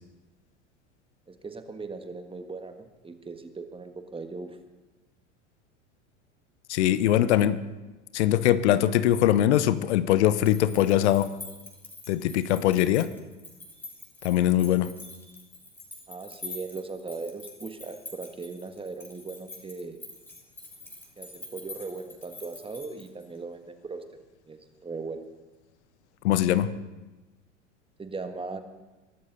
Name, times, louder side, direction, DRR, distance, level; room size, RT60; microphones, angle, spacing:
voice 1, 1.3-4.6 16.1-20.0 21.2-24.0 24.5-25.2 28.0-28.6, right 4 dB, 15° right, 7 dB, 1.6 m, -38 dB
voice 2, 6.7-7.6 8.1-11.3 12.1-13.1 14.2-14.9 26.2-26.7, left 12 dB, 65° left, 15 dB, 0.9 m, -22 dB
sound 1, 10.3-23.4, left 2 dB, 5° left, 3.4 m, -46 dB
23.0 x 12.5 x 4.0 m, 1.1 s
hypercardioid pair, 80°, 37 cm